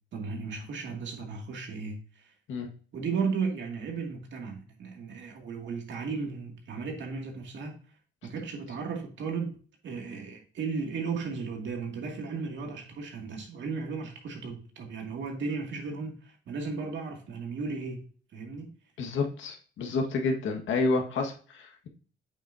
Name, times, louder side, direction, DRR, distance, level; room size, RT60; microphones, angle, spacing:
voice 1, 0.1-2.3 2.9-7.8 8.2-9.6 9.8-18.7, right 5 dB, 65° right, 2.4 m, -35 dB
voice 2, 19.0-21.9, left 3 dB, 75° left, 1.8 m, -29 dB
8.3 x 7.1 x 2.8 m
cardioid pair, 90°, 20 cm